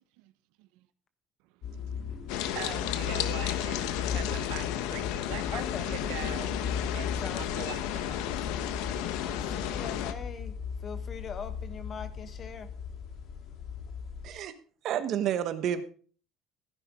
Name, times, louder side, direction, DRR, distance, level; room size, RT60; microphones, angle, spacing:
sound 1, 1.6-14.3, left 6 dB, 50° left, 2.1 m, -37 dB
voice 1, 1.7-6.5 6.9-8.3, right 16 dB, 90° right, 1.1 m, -43 dB
sound 2, 2.3-10.1, left 12 dB, 85° left, 1.2 m, -33 dB
voice 2, 5.5-5.9 7.2-7.8 9.2-10.5 10.8-12.7, left 6 dB, 30° left, 1.3 m, -41 dB
voice 3, 14.2-14.5 14.8-15.8, right 9 dB, 50° right, 1.3 m, -29 dB
15.5 x 10.0 x 3.8 m
cardioid pair, 155°, 0 cm